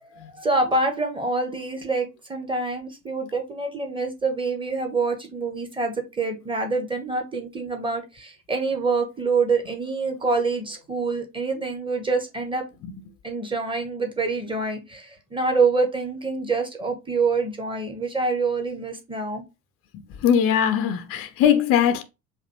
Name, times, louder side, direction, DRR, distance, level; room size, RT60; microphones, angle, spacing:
voice 1, 0.0-12.6 13.2-19.5, right 3 dB, 10° right, 1.0 m, -26 dB
voice 2, 20.2-22.0, left 9 dB, 30° left, 0.5 m, -20 dB
5.0 x 2.3 x 2.9 m
figure-of-eight pair, 65°, 47 cm